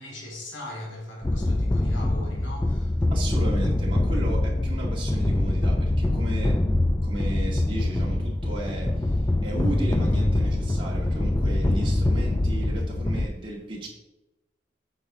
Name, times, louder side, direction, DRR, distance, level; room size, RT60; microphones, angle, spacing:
voice 1, 0.0-3.1, left 1 dB, 80° left, 2.6 m, -39 dB
sound 1, 1.2-13.3, left 1 dB, 15° left, 0.3 m, -24 dB
voice 2, 3.1-6.7 7.0-13.9, right 1 dB, 25° right, 2.1 m, -35 dB
8.8 x 6.8 x 3.8 m
head